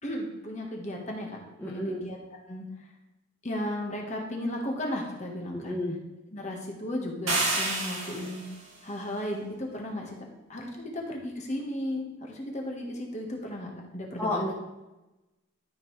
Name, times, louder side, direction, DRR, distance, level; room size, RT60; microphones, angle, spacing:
voice 1, 0.0-1.4 1.6-2.2 2.5-2.7 3.4-5.8 6.3-8.4 8.8-10.2 10.5-14.5, left 1 dB, 35° left, 0 dB, 1.4 m, -35 dB
voice 2, 1.6-2.1 5.5-5.9 14.2-14.5, left 1 dB, 10° left, -5 dB, 0.9 m, -31 dB
sound 1, 7.3-8.5, right 2 dB, 80° right, 2.2 m, -29 dB
12.5 x 5.4 x 3.2 m, 1.0 s
head